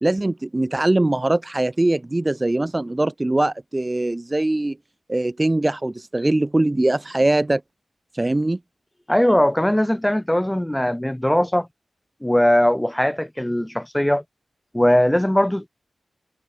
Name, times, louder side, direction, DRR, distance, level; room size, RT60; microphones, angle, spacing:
voice 1, 0.0-4.8 5.1-7.6 8.1-8.6, right 2 dB, 25° right, 2.5 m, -21 dB
voice 2, 9.1-11.7 12.2-14.2 14.7-15.7, left 1 dB, 10° left, 6.2 m, -19 dB
cardioid pair, 60°, 0 cm